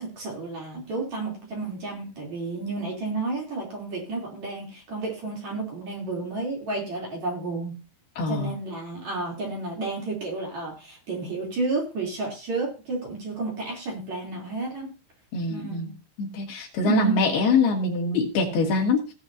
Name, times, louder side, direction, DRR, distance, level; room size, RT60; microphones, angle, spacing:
voice 1, 0.0-7.8 8.3-14.9 15.5-16.0 16.8-17.2, right 3 dB, 40° right, -1 dB, 4.1 m, -31 dB
voice 2, 8.2-8.5 15.3-15.9 16.2-19.1, left 4 dB, 55° left, -1 dB, 3.9 m, -24 dB
18.5 x 7.8 x 2.8 m, 0.33 s
omnidirectional pair, 5.8 m